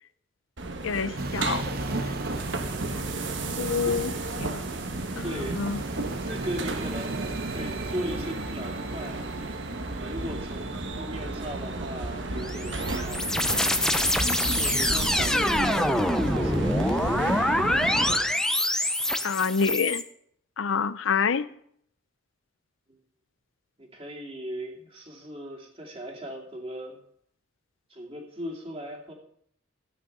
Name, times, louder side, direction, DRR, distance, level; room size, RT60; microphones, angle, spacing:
sound 1, 0.6-18.1, right 2 dB, 65° right, 1.3 m, -33 dB
voice 1, 0.8-1.6 3.6-4.1 4.4-4.6 5.2-5.8 19.2-20.0 20.6-21.5, left 5 dB, 75° left, 16 dB, 0.6 m, -27 dB
sound 2, 1.2-17.4, right 2 dB, 50° right, 0.9 m, -39 dB
voice 2, 5.2-5.6 6.2-7.2 7.5-13.2 14.4-16.9 19.3-19.6 23.8-27.0 27.9-29.1, equal, 30° right, 1 dB, 2.5 m, -38 dB
sound 3, 12.4-20.0, left 1 dB, 5° left, 0.6 m, -25 dB
15.0 x 9.0 x 5.4 m, 0.68 s
head